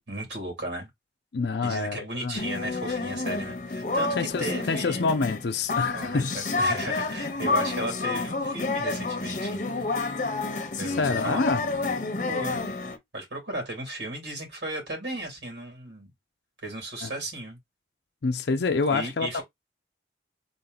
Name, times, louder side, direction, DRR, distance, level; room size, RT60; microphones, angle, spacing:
voice 1, 0.1-0.9 1.6-5.0 5.9-9.8 10.8-11.5 12.3-12.7 13.1-16.1 16.6-17.6 18.9-19.4, right 1 dB, 80° right, 2.6 m, -35 dB
voice 2, 1.3-2.4 4.2-6.4 6.9-7.1 10.9-11.6 17.0-17.1 18.2-19.4, left 4 dB, 65° left, 0.5 m, -27 dB
sound 1, 2.4-13.0, left 3 dB, 45° left, 0.8 m, -29 dB
3.8 x 2.9 x 3.9 m
head